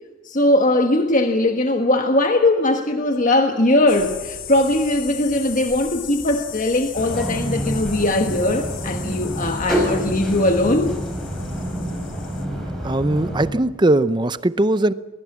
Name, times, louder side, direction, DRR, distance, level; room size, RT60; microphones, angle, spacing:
voice 1, 0.2-10.9, left 1 dB, 40° left, 5 dB, 1.4 m, -20 dB
sound 1, 3.9-12.5, left 7 dB, 60° left, 3.6 m, -37 dB
sound 2, 6.9-13.5, equal, ahead, 6.1 m, -27 dB
voice 2, 12.8-14.9, right 1 dB, 20° right, 15 dB, 0.6 m, -19 dB
22.0 x 21.5 x 7.3 m, 1.2 s
head